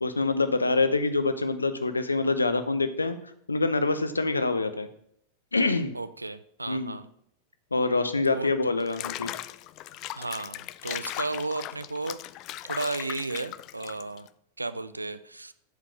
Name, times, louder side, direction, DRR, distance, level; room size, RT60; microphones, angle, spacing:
voice 1, 0.0-3.2 3.5-4.9 5.5-5.9 6.7-7.0 7.7-9.3, left 3 dB, 80° left, 10 dB, 0.8 m, -25 dB
voice 2, 5.9-7.1 8.2-8.5 10.2-12.2 12.7-14.3 14.6-15.5, right 3 dB, 80° right, 13 dB, 0.5 m, -34 dB
Water / Bathtub (filling or washing), 8.8-14.3, left 15 dB, 40° left, 0.4 m, -38 dB
8.1 x 5.1 x 7.0 m, 0.69 s
figure-of-eight pair, 90°, 0 cm